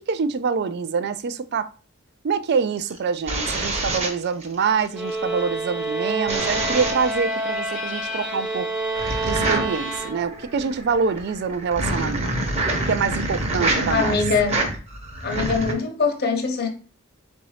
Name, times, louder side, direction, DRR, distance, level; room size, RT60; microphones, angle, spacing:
voice 1, 0.1-1.7 2.2-8.7 9.3-12.3 12.9-14.2, right 5 dB, 55° right, 0.4 m, -25 dB
sound 1, 2.8-4.9 6.3-7.2 8.9-15.7, right 2 dB, 35° right, 0.9 m, -26 dB
sound 2, 4.9-10.6, right 2 dB, 5° right, 0.7 m, -28 dB
voice 2, 13.9-14.6 15.2-16.7, left 4 dB, 55° left, 0.9 m, -23 dB
3.9 x 2.7 x 4.8 m
head